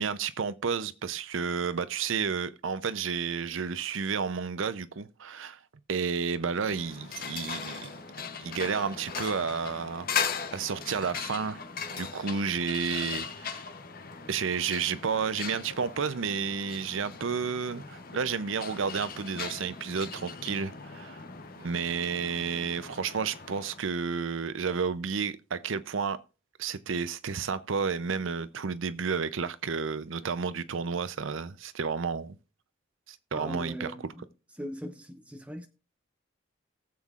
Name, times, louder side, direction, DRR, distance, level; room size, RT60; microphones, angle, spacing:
voice 1, 0.0-5.6 5.9-8.0 8.4-10.1 10.5-11.6 11.9-13.6 14.3-21.2 21.6-26.2 26.6-32.4 33.1-34.1, right 5 dB, 75° right, 0.6 m, -31 dB
sound 1, 6.4-23.9, left 6 dB, 45° left, 0.8 m, -39 dB
voice 2, 33.3-34.0 34.6-35.7, equal, 5° right, 0.8 m, -39 dB
18.0 x 7.3 x 2.4 m
head